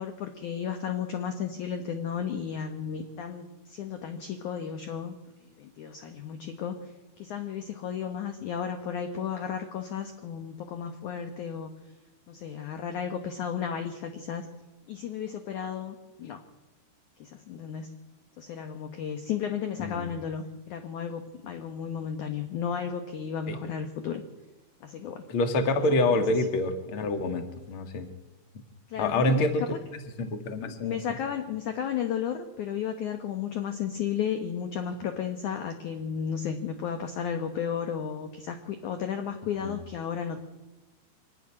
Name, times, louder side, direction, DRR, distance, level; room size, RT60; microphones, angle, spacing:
voice 1, 0.0-5.1 5.6-6.9 7.2-11.7 12.3-14.5 14.9-16.4 17.2-17.9 18.4-24.2 24.8-25.3 26.1-26.2 28.9-29.8 30.7-40.4, left 8 dB, 75° left, 6 dB, 1.8 m, -33 dB
voice 2, 19.8-20.1 23.5-23.6 25.3-28.1 29.0-29.6 29.9-31.0 39.6-39.8, left 2 dB, 50° left, 6 dB, 1.7 m, -27 dB
25.0 x 12.0 x 9.9 m, 1.1 s
omnidirectional pair, 5.3 m